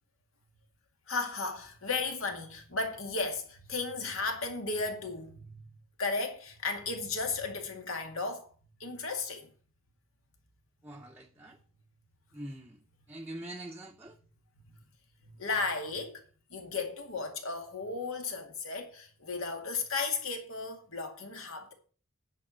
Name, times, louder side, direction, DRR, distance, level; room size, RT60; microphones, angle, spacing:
voice 1, 1.1-5.6 6.0-8.5 8.8-9.5 15.2-16.2 16.5-21.7, left 3 dB, 80° left, 2.2 m, -35 dB
voice 2, 10.8-11.6 12.3-12.8 13.1-14.2, right 1 dB, 10° right, 0.6 m, -44 dB
10.5 x 4.7 x 7.6 m
head